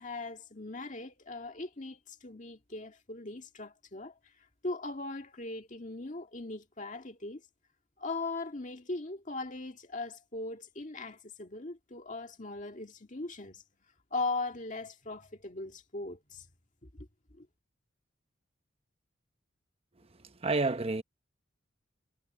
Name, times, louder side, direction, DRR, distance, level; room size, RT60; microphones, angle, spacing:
voice 1, 0.0-4.2 4.6-7.4 8.0-13.6 14.1-16.5 16.8-17.1 17.3-17.5, left 3 dB, 40° left, 1.9 m, -39 dB
voice 2, 20.0-21.0, right 3 dB, 30° right, 0.9 m, -31 dB
head